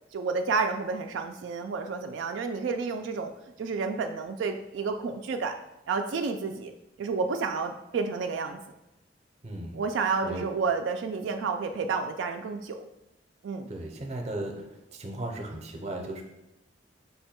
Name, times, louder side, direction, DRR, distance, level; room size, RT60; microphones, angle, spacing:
voice 1, 0.1-3.3 3.6-5.6 5.9-6.7 7.0-8.6 9.7-12.8 13.4-13.7, right 4 dB, 85° right, 5 dB, 0.3 m, -30 dB
voice 2, 9.4-9.8 10.2-10.5 13.7-14.7 14.9-16.2, right 1 dB, 40° right, 2 dB, 0.6 m, -36 dB
5.5 x 2.2 x 4.3 m, 0.93 s
head